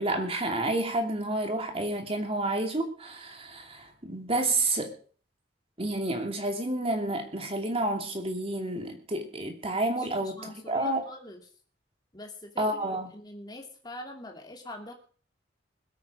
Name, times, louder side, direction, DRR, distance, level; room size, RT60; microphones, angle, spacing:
voice 1, 0.0-4.9 5.8-11.0 12.6-13.1, right 2 dB, 30° right, 4 dB, 2.7 m, -30 dB
voice 2, 9.9-11.4 12.1-14.9, left 1 dB, 20° left, 2 dB, 2.7 m, -44 dB
21.0 x 9.2 x 5.0 m, 0.42 s
head